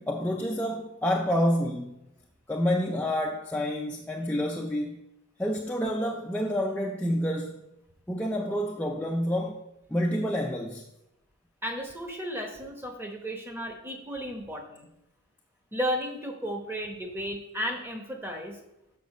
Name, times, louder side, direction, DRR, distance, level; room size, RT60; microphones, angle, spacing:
voice 1, 0.0-2.0 2.5-5.0 5.4-7.6 8.1-9.6 9.9-10.9, equal, 5° left, 0.4 m, -28 dB
voice 2, 11.6-14.9 15.7-18.6, equal, 10° right, 0.9 m, -34 dB
6.7 x 5.0 x 6.5 m
head